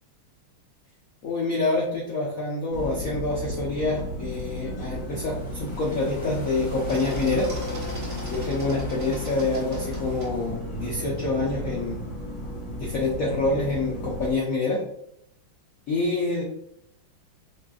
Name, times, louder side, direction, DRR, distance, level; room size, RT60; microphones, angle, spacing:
voice 1, 1.2-7.5 8.3-12.0 12.8-14.8 15.9-16.4, left 3 dB, 85° left, -3 dB, 0.7 m, -27 dB
sound 1, 2.7-14.3, equal, 55° left, 1.3 m, -34 dB
sound 2, 4.1-12.1, left 1 dB, 40° left, 1.7 m, -41 dB
sound 3, 6.9-10.3, right 1 dB, 30° right, 1.2 m, -42 dB
5.1 x 2.4 x 2.3 m, 0.76 s
omnidirectional pair, 2.3 m